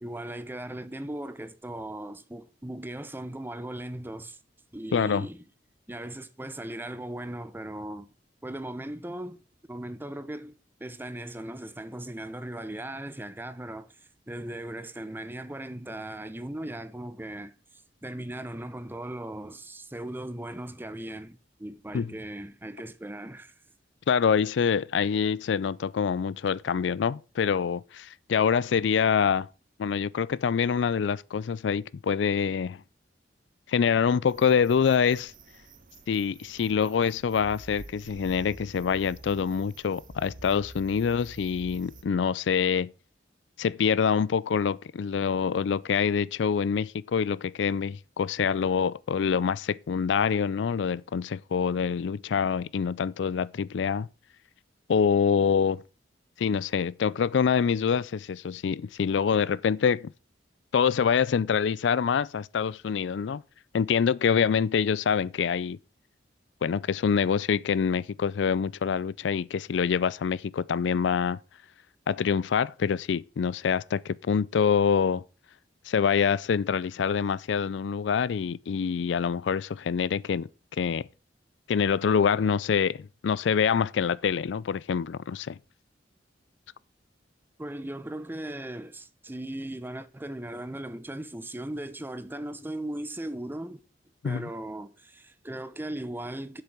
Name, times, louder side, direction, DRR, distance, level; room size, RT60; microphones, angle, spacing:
voice 1, 0.0-4.4 4.7-5.4 5.9-8.1 8.4-9.4 9.7-23.5 87.6-93.8 94.2-96.6, right 1 dB, 10° right, 0.7 m, -38 dB
voice 2, 4.9-5.3 21.9-22.1 24.1-29.5 29.8-32.8 33.7-35.3 36.1-42.9 43.6-54.1 54.9-55.8 56.4-60.1 60.7-63.4 63.7-65.8 66.6-71.4 72.1-75.2 75.9-80.5 80.8-81.1 81.7-85.6 94.2-94.5, left 6 dB, 75° left, 0.4 m, -25 dB
sound 1, 34.3-42.0, right 2 dB, 45° right, 1.1 m, -48 dB
8.0 x 6.7 x 6.1 m
head